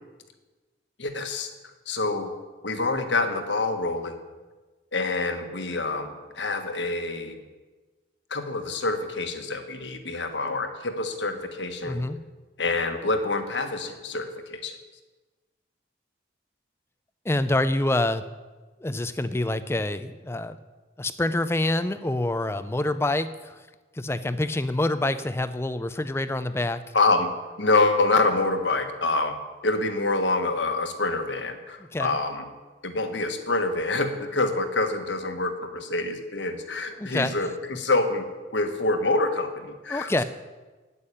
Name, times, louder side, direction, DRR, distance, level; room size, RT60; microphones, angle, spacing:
voice 1, 1.0-1.5 1.9-2.3 2.6-4.2 4.9-7.4 8.3-12.0 12.6-14.7 26.9-27.3 27.6-29.4 29.6-32.4 32.8-38.2 38.5-40.2, left 3 dB, 75° left, 6 dB, 1.5 m, -26 dB
voice 2, 11.8-12.2 17.2-18.2 18.8-20.6 21.0-23.6 23.9-26.9 31.9-32.2 37.0-37.3 39.9-40.2, left 1 dB, 15° left, 12 dB, 0.4 m, -26 dB
9.7 x 8.4 x 9.8 m, 1.3 s
head